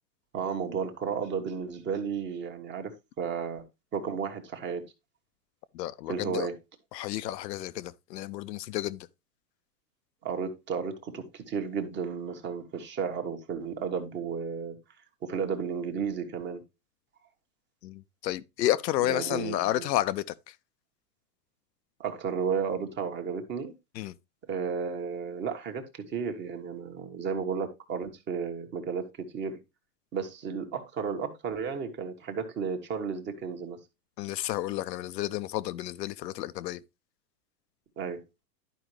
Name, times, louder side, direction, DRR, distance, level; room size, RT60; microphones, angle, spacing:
voice 1, 0.3-2.9 3.2-3.6 3.9-4.8 6.1-6.5 10.2-14.8 15.2-16.6 19.0-19.9 22.0-23.7 24.5-29.6 30.1-33.8 38.0-38.2, right 6 dB, 20° right, 1.3 m, -33 dB
voice 2, 5.7-6.5 6.9-9.1 17.8-20.6 23.9-24.1 34.2-36.8, left 14 dB, 80° left, 0.8 m, -31 dB
11.5 x 5.0 x 3.2 m
supercardioid pair, 145°, 49 cm